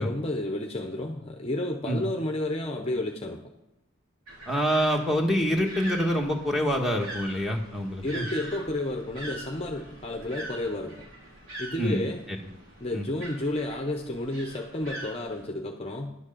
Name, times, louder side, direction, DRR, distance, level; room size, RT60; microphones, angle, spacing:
voice 1, 0.0-3.4 8.0-11.0 11.6-12.2 12.8-16.1, left 1 dB, 30° left, 3 dB, 0.8 m, -31 dB
sound 1, 4.3-15.4, right 1 dB, 80° right, 4.8 m, -43 dB
voice 2, 4.5-8.3 11.8-12.0 12.3-12.4 12.9-13.1, equal, ahead, 1 dB, 1.4 m, -26 dB
11.0 x 6.3 x 6.7 m, 0.93 s
head